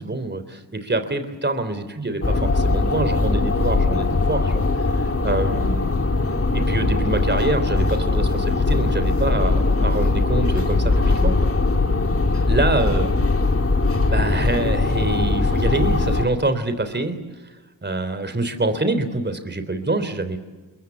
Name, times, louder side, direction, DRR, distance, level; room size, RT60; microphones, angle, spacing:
voice 1, 0.0-5.9 6.5-11.3 12.5-13.1 14.1-17.2 17.4-17.5 17.8-20.4, right 2 dB, 25° right, 10 dB, 3.4 m, -25 dB
sound 1, 2.2-16.2, left 3 dB, 30° left, 2.8 m, -20 dB
27.0 x 23.0 x 8.3 m, 1.3 s
supercardioid pair, 45°, 45 cm